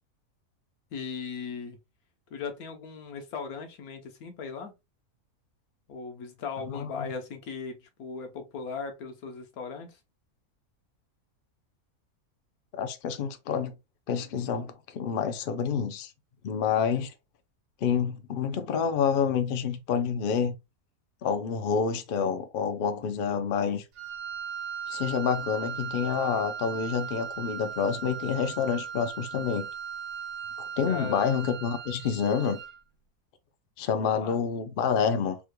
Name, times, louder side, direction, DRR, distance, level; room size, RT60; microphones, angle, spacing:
voice 1, 0.9-1.8 2.3-4.7 5.9-10.0 30.9-31.3 34.0-34.4, left 5 dB, 85° left, 1.3 m, -38 dB
voice 2, 6.7-7.0 12.7-13.7 14.1-16.1 16.4-17.1 17.8-20.6 21.2-23.8 24.9-29.7 30.6-32.6 33.8-35.4, left 6 dB, 65° left, 0.5 m, -28 dB
Wind instrument woodwind instrument, 23.9-32.8, right 7 dB, 65° right, 0.8 m, -38 dB
3.6 x 2.2 x 3.0 m
omnidirectional pair, 1.5 m